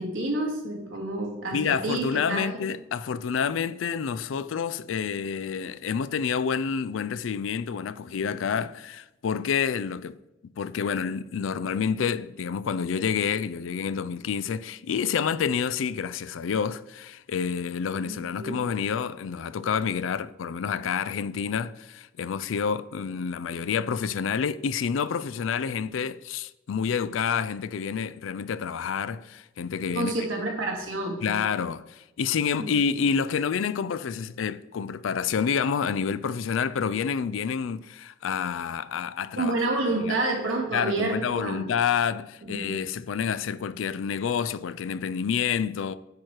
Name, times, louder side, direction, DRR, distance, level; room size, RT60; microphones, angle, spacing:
voice 1, 0.0-2.5 18.1-18.6 29.9-31.4 32.6-32.7 39.3-41.7 42.4-42.7, right 2 dB, 85° right, 2.0 m, -29 dB
voice 2, 1.5-10.2 10.6-30.2 31.2-39.5 40.0-40.2 40.7-45.9, left 6 dB, 80° left, 0.4 m, -28 dB
9.6 x 4.4 x 4.6 m
head